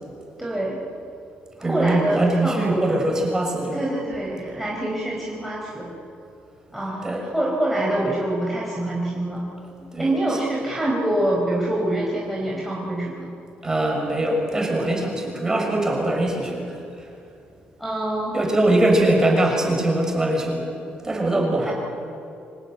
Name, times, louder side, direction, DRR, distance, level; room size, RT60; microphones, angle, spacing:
voice 1, 0.4-0.8 1.6-2.9 3.7-5.9 6.7-9.4 10.0-13.3 17.8-18.4 21.6-21.7, right 1 dB, ahead, -4 dB, 4.5 m, -25 dB
voice 2, 1.6-3.8 7.0-7.2 9.8-10.1 13.6-17.1 18.3-20.6 21.0-21.7, right 1 dB, 15° right, 1 dB, 6.4 m, -22 dB
25.5 x 19.0 x 9.5 m, 2.6 s
cardioid pair, 110°, 4 cm